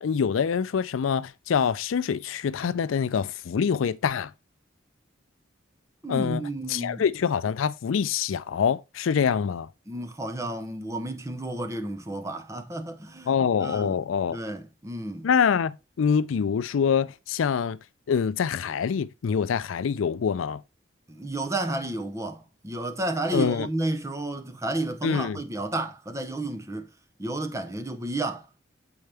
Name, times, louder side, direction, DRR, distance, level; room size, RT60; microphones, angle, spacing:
voice 1, 0.0-4.3 6.1-6.4 6.7-9.7 13.3-14.4 15.2-17.8 18.1-20.6 23.3-23.7 25.0-25.4, left 7 dB, 90° left, 0.4 m, -25 dB
voice 2, 6.0-7.0 9.9-13.3 13.6-14.0 14.3-15.3 21.1-26.9 27.2-28.5, right 2 dB, 15° right, 0.6 m, -31 dB
7.9 x 4.4 x 3.4 m
head